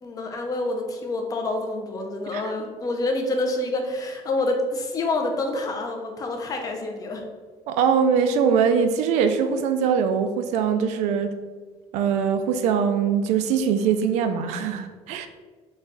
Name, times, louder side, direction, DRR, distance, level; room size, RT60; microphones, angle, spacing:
voice 1, 0.0-7.2, left 2 dB, 30° left, 2 dB, 0.5 m, -27 dB
voice 2, 7.7-11.3 11.9-15.3, right 6 dB, 75° right, 8 dB, 0.4 m, -22 dB
4.0 x 2.3 x 3.8 m, 1.4 s
cardioid pair, 145°, 12 cm